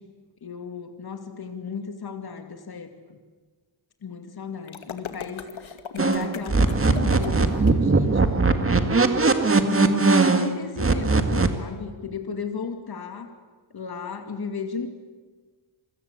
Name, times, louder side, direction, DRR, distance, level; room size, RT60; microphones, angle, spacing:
voice 1, 0.4-3.2 4.0-8.9 9.5-13.4 13.7-14.9, left 5 dB, 50° left, 6 dB, 2.5 m, -35 dB
sound 1, 4.7-7.7, left 7 dB, 75° left, 2.3 m, -39 dB
sound 2, 6.0-11.5, right 3 dB, 25° right, 2.0 m, -20 dB
27.5 x 25.0 x 8.4 m, 1.4 s
wide cardioid pair, 165°, 47 cm